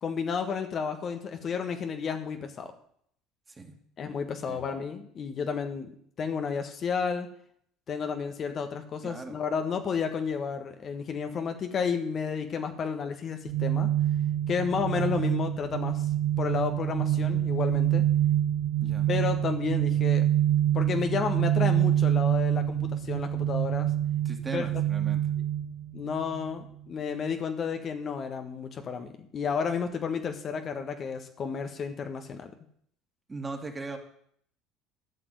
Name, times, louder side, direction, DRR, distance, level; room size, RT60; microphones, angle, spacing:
voice 1, 0.0-2.7 4.0-5.9 6.2-7.3 7.9-13.9 14.5-16.0 16.4-18.0 19.1-20.3 20.7-23.9 24.5-24.7 25.9-32.5, left 6 dB, 45° left, 6 dB, 1.5 m, -31 dB
voice 2, 9.0-9.4 15.0-15.2 18.8-19.1 24.2-25.2 33.3-34.0, right 3 dB, 20° right, 4 dB, 2.5 m, -39 dB
sound 1, 13.5-26.5, right 12 dB, 65° right, 0.4 m, -26 dB
12.0 x 6.0 x 9.5 m, 0.66 s
hypercardioid pair, 80°, 0 cm